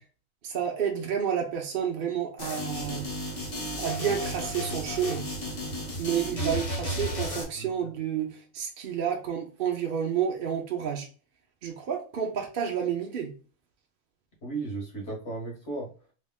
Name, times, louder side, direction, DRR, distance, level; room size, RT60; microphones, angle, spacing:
voice 1, 0.4-3.0 3.8-5.2 6.0-11.1 11.6-13.3, right 8 dB, 50° right, 1 dB, 0.7 m, -30 dB
sound 1, 2.4-7.4, equal, 30° left, 0.8 m, -33 dB
voice 2, 6.2-6.6 6.9-7.0 7.5-7.7 14.4-15.9, right 3 dB, 55° left, -1 dB, 1.8 m, -35 dB
3.5 x 3.3 x 2.3 m, 0.38 s
omnidirectional pair, 1.4 m